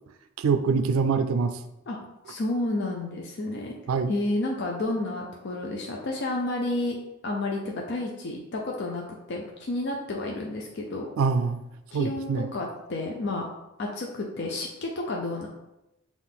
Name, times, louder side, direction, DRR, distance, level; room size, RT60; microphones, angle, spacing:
voice 1, 0.4-1.6 3.9-4.1 11.2-11.6 11.9-12.5, right 5 dB, 90° right, 10 dB, 0.3 m, -24 dB
voice 2, 2.3-3.8 4.1-7.0 7.2-9.0 9.3-11.1 11.9-13.4 13.8-15.5, left 2 dB, 55° left, 0 dB, 0.5 m, -30 dB
5.7 x 2.4 x 3.5 m, 0.90 s
head